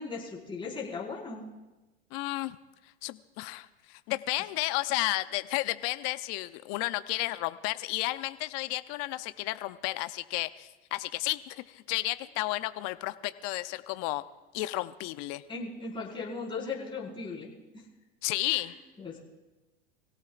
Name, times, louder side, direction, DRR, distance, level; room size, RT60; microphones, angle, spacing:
voice 1, 0.0-1.4 15.5-17.5 18.5-19.2, left 4 dB, 15° left, -4 dB, 5.0 m, -38 dB
voice 2, 2.1-2.6 3.0-14.2 14.5-15.4 18.2-18.7, left 19 dB, 55° left, 13 dB, 0.7 m, -32 dB
25.0 x 17.0 x 2.5 m, 1.1 s
hypercardioid pair, 100°, 32 cm